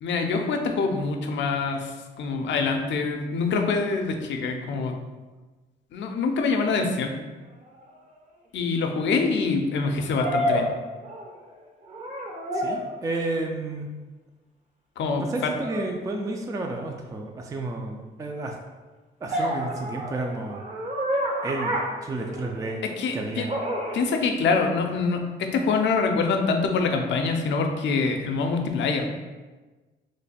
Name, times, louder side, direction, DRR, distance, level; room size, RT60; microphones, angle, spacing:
voice 1, 0.0-4.9 5.9-7.2 8.5-10.7 15.0-15.5 19.3-19.4 23.0-23.5 23.9-29.1, left 4 dB, 65° left, 4 dB, 0.5 m, -25 dB
sound 1, 7.8-7.9 10.2-11.5 11.9-12.9 15.6-15.9 19.3-22.8 23.5-24.0, equal, 35° right, 0.7 m, -29 dB
voice 2, 12.5-13.9 15.2-18.6 19.2-20.6 21.4-22.8 23.1-23.5, right 2 dB, 15° right, 2 dB, 0.3 m, -31 dB
3.1 x 2.2 x 4.1 m, 1.3 s
cardioid pair, 90°, 20 cm